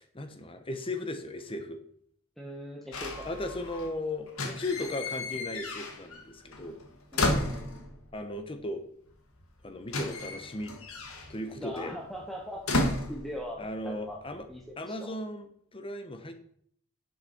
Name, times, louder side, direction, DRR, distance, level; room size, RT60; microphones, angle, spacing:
voice 1, 0.0-1.8 3.2-6.8 8.1-8.8 9.6-10.7 11.3-11.9 13.6-14.4 14.8-16.3, left 1 dB, 25° left, 7 dB, 1.0 m, -36 dB
voice 2, 2.4-3.4 7.1-7.9 11.6-12.6 13.1-14.2 14.5-15.1, equal, ahead, -1 dB, 0.9 m, -41 dB
sound 1, 2.9-3.9 4.3-6.3 6.5-8.1 9.1-9.2 9.4-13.9 14.2-14.6, left 2 dB, 85° left, 1.5 m, -33 dB
10.0 x 5.7 x 4.4 m, 0.64 s
head